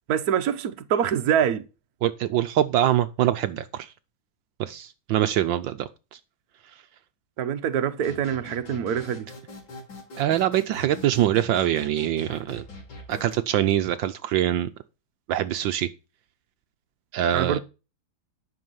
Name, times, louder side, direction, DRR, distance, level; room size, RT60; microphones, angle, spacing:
voice 1, 0.1-1.6 7.4-9.3 17.3-17.6, right 9 dB, 55° right, 1.3 m, -25 dB
voice 2, 2.0-3.9 4.6-6.2 10.2-12.6 13.1-14.7 15.3-15.9 17.1-17.6, right 12 dB, 75° right, 1.3 m, -24 dB
sound 1, 8.0-13.4, left 1 dB, 75° left, 3.9 m, -42 dB
10.5 x 6.4 x 5.5 m
omnidirectional pair, 2.1 m